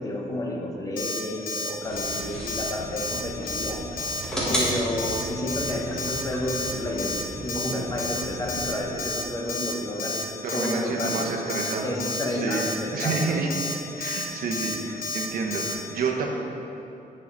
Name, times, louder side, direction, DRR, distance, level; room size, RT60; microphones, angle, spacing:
voice 1, 0.0-4.0 4.5-11.3 11.8-13.4, left 1 dB, 20° left, 0 dB, 0.9 m, -31 dB
Alarm, 1.0-1.2 1.5-1.7 2.0-2.2 2.5-2.7 3.0-3.2 3.5-3.7 4.0-4.2 4.5-4.7 5.0-5.2 5.5-5.7 6.0-6.2 6.5-6.7 7.0-7.2 7.5-7.7 8.0-8.2 8.5-8.7 9.0-9.2 9.5-9.7 10.0-10.2 10.5-10.7 11.0-11.2 11.5-11.7 12.0-12.2 12.5-12.7 13.0-13.2 13.5-13.7 14.0-14.2 14.5-14.7 15.0-15.2 15.5-15.7, left 3 dB, 65° left, 1.0 m, -31 dB
sound 1, 1.8-8.8, equal, 5° left, 1.6 m, -34 dB
voice 2, 4.4-4.7 10.4-13.5 14.0-16.3, right 4 dB, 70° right, 0 dB, 1.0 m, -30 dB
8.8 x 5.6 x 4.0 m, 2.9 s
cardioid pair, 145°, 16 cm